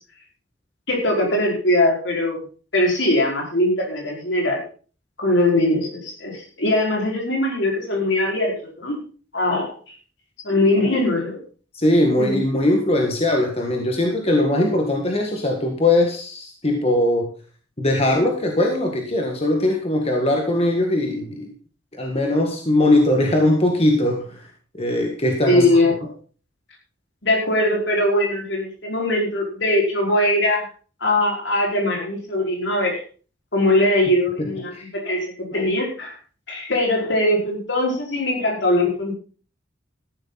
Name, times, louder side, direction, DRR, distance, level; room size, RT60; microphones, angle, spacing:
voice 1, 0.9-2.4 2.7-4.6 5.2-9.0 9.3-9.7 10.4-11.4 12.2-12.7 25.4-26.1 27.2-30.7 31.0-33.0 33.5-36.1 36.5-39.1, left 1 dB, 65° left, 0 dB, 5.2 m, -21 dB
voice 2, 11.7-17.3 17.8-21.5 22.0-24.4 24.7-25.7 34.7-34.9, left 1 dB, 30° left, 2 dB, 1.8 m, -20 dB
14.0 x 11.5 x 4.1 m, 0.39 s
head